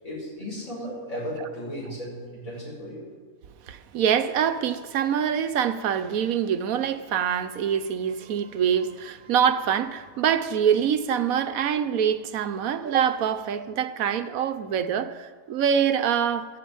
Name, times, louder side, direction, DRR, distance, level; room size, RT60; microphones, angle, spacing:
voice 1, 0.0-3.1, equal, 70° left, 6.1 m, -35 dB
voice 2, 3.7-16.5, right 8 dB, 75° right, 1.2 m, -25 dB
11.5 x 8.6 x 9.5 m
omnidirectional pair, 1.5 m